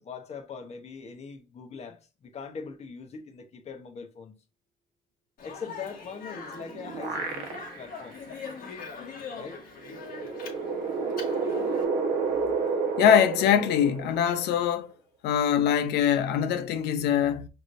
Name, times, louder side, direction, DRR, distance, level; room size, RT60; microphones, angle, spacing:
voice 1, 0.0-4.4 5.4-8.2 9.4-9.6, left 5 dB, 40° left, 1.1 m, -41 dB
Speech, 5.4-11.8, left 5 dB, 60° left, 1.4 m, -42 dB
sound 1, 6.3-8.0 8.4-8.5 9.8-14.6, right 4 dB, 70° right, 1.2 m, -30 dB
voice 2, 13.0-14.9 15.2-17.5, left 9 dB, 80° left, 0.7 m, -23 dB
5.9 x 3.2 x 2.6 m
cardioid pair, 110°, 17 cm